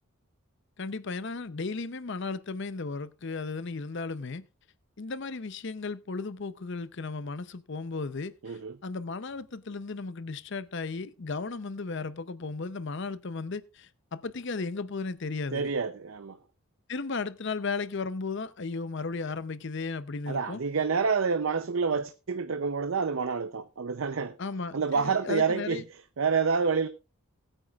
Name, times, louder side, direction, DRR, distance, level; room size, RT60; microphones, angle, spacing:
voice 1, 0.8-4.4 5.0-15.7 16.9-20.6 24.4-25.8, left 4 dB, 55° left, 0.6 m, -35 dB
voice 2, 8.4-8.8 15.5-16.4 20.3-24.4 24.7-26.9, right 5 dB, 65° right, 0.6 m, -28 dB
20.0 x 9.0 x 2.4 m
head